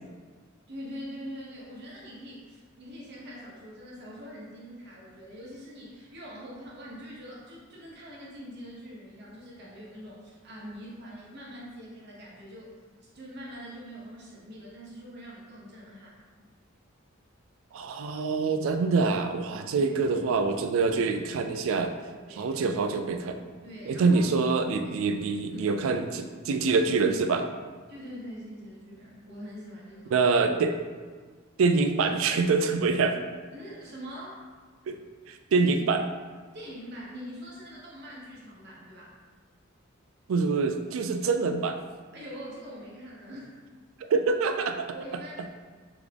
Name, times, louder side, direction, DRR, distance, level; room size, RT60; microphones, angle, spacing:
voice 1, 0.7-12.7 13.1-16.2 19.7-20.2 22.3-22.6 23.6-24.2 24.8-25.0 25.5-25.7 27.9-30.2 33.5-34.4 35.6-35.7 36.5-39.1 42.1-43.5 44.9-45.5, equal, 55° right, -5 dB, 1.1 m, -43 dB
voice 2, 17.7-21.9 22.3-23.4 23.9-27.4 30.1-30.8 31.6-33.2 34.9-35.0 35.3-36.0 40.3-41.8 44.1-44.9, right 4 dB, 75° right, 7 dB, 0.4 m, -25 dB
3.6 x 3.5 x 3.4 m, 1.5 s
head